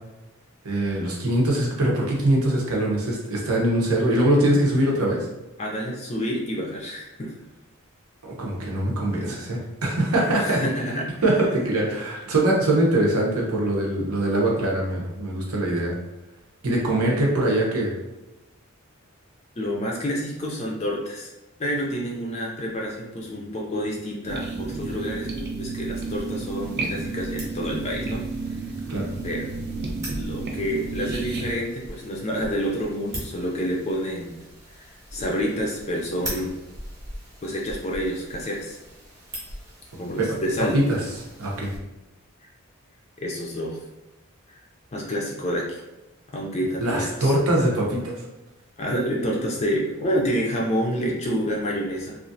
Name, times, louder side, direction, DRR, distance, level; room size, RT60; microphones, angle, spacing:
voice 1, 0.6-5.2 8.2-10.6 11.2-15.9 16.6-17.9 28.9-29.1 40.2-40.4 40.7-41.0 41.4-41.7 46.8-48.2, right 1 dB, 85° right, -3 dB, 0.8 m, -22 dB
voice 2, 5.6-7.3 10.3-11.2 19.6-21.3 21.6-28.2 28.5-28.6 29.2-29.5 30.1-34.4 34.7-36.5 37.4-38.8 40.0-40.8 43.2-43.8 44.5-44.6 44.9-45.8 46.3-47.3 48.8-52.2, equal, 30° left, -2 dB, 0.4 m, -28 dB
sound 1, 24.2-31.6, right 3 dB, 50° right, 0.4 m, -31 dB
sound 2, 25.9-41.8, equal, 15° right, 0.9 m, -42 dB
3.0 x 2.4 x 2.6 m, 1.0 s
head